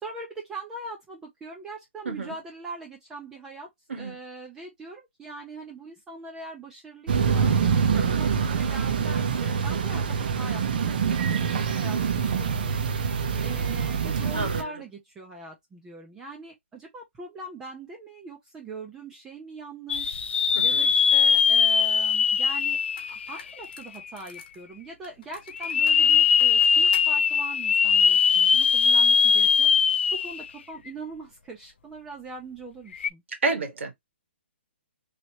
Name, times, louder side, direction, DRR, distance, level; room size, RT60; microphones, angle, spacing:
voice 1, 0.0-3.7 4.0-7.5 7.9-12.9 13.4-20.2 20.6-22.8 23.1-29.7 30.1-33.2, right 2 dB, 10° right, 0.5 m, -41 dB
voice 2, 2.0-2.4 3.9-4.1 7.9-8.2 14.3-14.7 20.5-20.9 33.4-33.9, right 3 dB, 80° right, 1.6 m, -30 dB
sound 1, 7.1-14.6, right 6 dB, 45° right, 0.7 m, -25 dB
sound 2, 19.9-23.9 24.4-24.5 25.5-30.5 30.9-31.0 32.9-33.1, left 6 dB, 70° left, 0.4 m, -21 dB
sound 3, 22.3-22.4 23.0-24.6 25.0-27.1, left 5 dB, 40° left, 1.2 m, -47 dB
3.2 x 2.9 x 2.8 m
hypercardioid pair, 165°, 7 cm